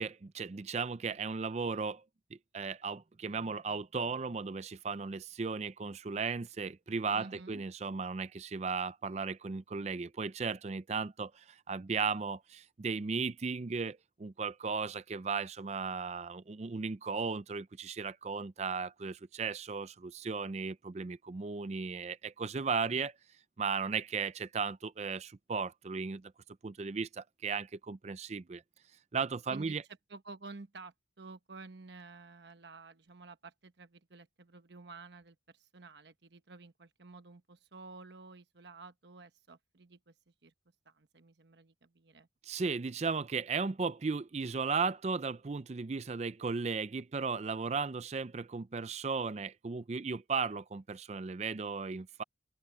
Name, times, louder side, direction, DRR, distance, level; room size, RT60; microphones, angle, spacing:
voice 1, 0.0-2.0 2.5-23.1 23.6-26.3 26.6-28.6 29.1-29.8 42.4-52.2, right 5 dB, 35° right, 0.4 m, -36 dB
voice 2, 7.1-7.6 29.5-29.8 30.1-40.5 40.8-42.3, right 3 dB, 65° right, 1.1 m, -51 dB
open air
head